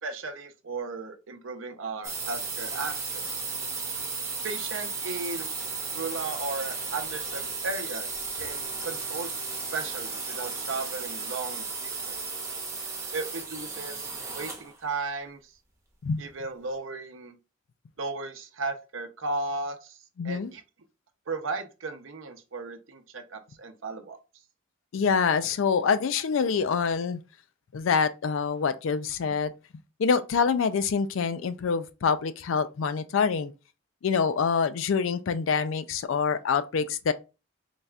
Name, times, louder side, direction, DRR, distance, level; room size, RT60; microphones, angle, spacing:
voice 1, 0.0-3.3 4.4-5.5 5.9-8.1 8.4-12.2 13.1-15.5 16.2-17.4 18.0-20.6 21.3-24.2, right 3 dB, 70° right, 0.7 m, -35 dB
sound 1, 2.0-14.7, right 4 dB, 15° right, 0.7 m, -34 dB
voice 2, 20.2-20.5 24.9-27.2 27.7-29.5 30.0-33.5 34.0-37.1, left 5 dB, 70° left, 0.4 m, -26 dB
4.0 x 2.4 x 3.3 m
head